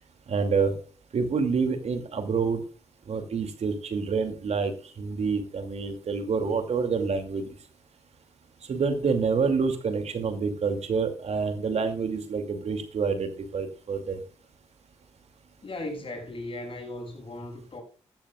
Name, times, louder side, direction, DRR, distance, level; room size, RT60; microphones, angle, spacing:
voice 1, 0.3-0.7 1.1-2.6 3.1-4.7 5.0-7.5 8.7-14.2, right 5 dB, 65° right, 2.5 m, -27 dB
voice 2, 15.6-17.8, left 1 dB, 50° left, 6.8 m, -37 dB
14.0 x 13.5 x 2.4 m
cardioid pair, 55°, 12 cm